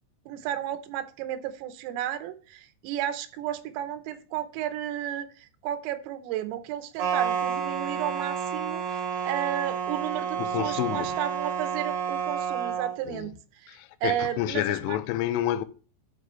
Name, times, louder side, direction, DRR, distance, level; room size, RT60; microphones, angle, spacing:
voice 1, 0.3-13.3 13.6-13.7 14.0-15.0, right 11 dB, 85° right, 3.5 m, -33 dB
sound 1, 7.0-13.0, right 7 dB, 70° right, 2.2 m, -30 dB
voice 2, 10.4-11.1 13.1-13.3 13.7-15.6, left 13 dB, 90° left, 3.2 m, -29 dB
12.0 x 4.9 x 3.1 m
omnidirectional pair, 5.8 m